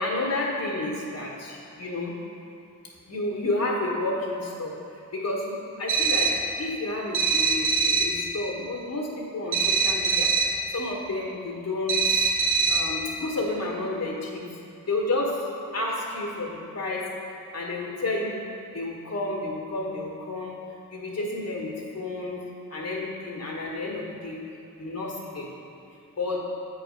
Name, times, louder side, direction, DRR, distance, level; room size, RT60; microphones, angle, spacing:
voice 1, 0.0-2.2 3.1-4.7 5.1-6.3 6.6-12.2 12.7-14.5 14.9-15.4 15.7-18.4 18.7-20.6 20.9-22.4 22.7-24.4 24.8-25.5 26.2-26.4, left 2 dB, 45° left, -3 dB, 1.3 m, -31 dB
sound 1, 5.9-6.5 7.1-8.2 9.5-10.6 11.9-13.0, right 4 dB, 65° right, 0.8 m, -23 dB
8.3 x 3.1 x 5.1 m, 2.6 s
cardioid pair, 50°, 35 cm